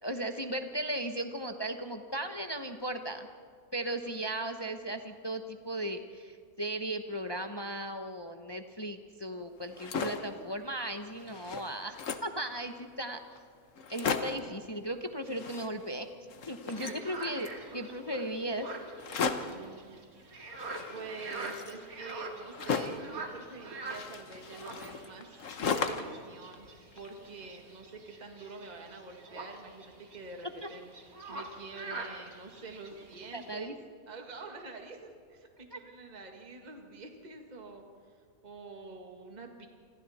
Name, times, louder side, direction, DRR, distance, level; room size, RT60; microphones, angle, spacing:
voice 1, 0.0-3.3 3.7-13.2 13.9-16.1 16.5-18.7 30.6-30.7 33.3-33.7 35.7-35.8, right 1 dB, 20° left, 6 dB, 0.8 m, -36 dB
sound 1, 9.6-10.3 10.8-10.9 11.2-12.4 13.0-13.1 13.4-13.5 13.8-14.5 15.2-16.0 16.3-17.6 19.0-19.6 20.6-23.1 23.9-26.2 26.5-27.4, left 5 dB, 55° left, 1.4 m, -36 dB
voice 2, 16.6-17.1 19.3-20.0 20.9-26.7 27.0-33.8 34.1-37.8 38.4-39.7, right 3 dB, 25° right, 3 dB, 1.9 m, -47 dB
sound 2, 16.7-33.5, right 2 dB, 65° right, 2.6 m, -45 dB
27.5 x 26.0 x 4.3 m, 2.1 s
omnidirectional pair, 1.6 m